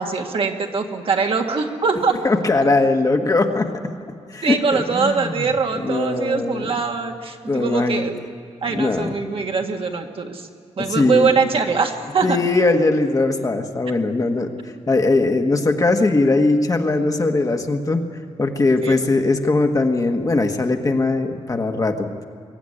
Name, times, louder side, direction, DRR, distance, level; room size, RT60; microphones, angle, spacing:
voice 1, 0.0-2.2 4.4-8.1 8.6-10.5 10.8-12.4 14.1-14.2 18.8-19.0, right 5 dB, 55° right, 3 dB, 1.7 m, -22 dB
voice 2, 2.2-3.7 4.3-5.5 5.8-6.7 7.5-8.1 8.7-9.1 10.8-11.3 12.2-14.5 14.9-18.0 18.4-22.1, left 3 dB, 30° left, 4 dB, 1.4 m, -20 dB
22.5 x 14.5 x 10.0 m, 2.3 s
wide cardioid pair, 130°, 11 cm